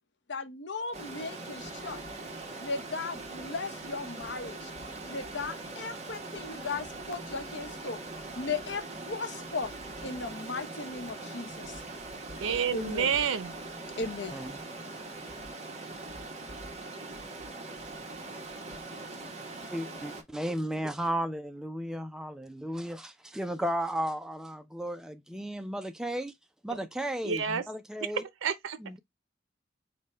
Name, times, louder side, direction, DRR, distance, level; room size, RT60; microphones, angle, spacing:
voice 1, 0.3-2.0 2.6-4.7 5.1-8.0 8.3-9.7 10.0-11.8 12.7-13.1 13.9-14.4, left 4 dB, 60° left, 0.8 m, -36 dB
Stream, 0.9-20.2, right 2 dB, 35° right, 1.0 m, -42 dB
voice 2, 12.4-13.5 27.2-27.7 28.1-28.8, right 7 dB, 85° right, 0.5 m, -29 dB
voice 3, 19.7-26.3 26.6-28.2 28.8-29.0, right 1 dB, 5° right, 0.3 m, -34 dB
5.1 x 2.2 x 4.2 m
head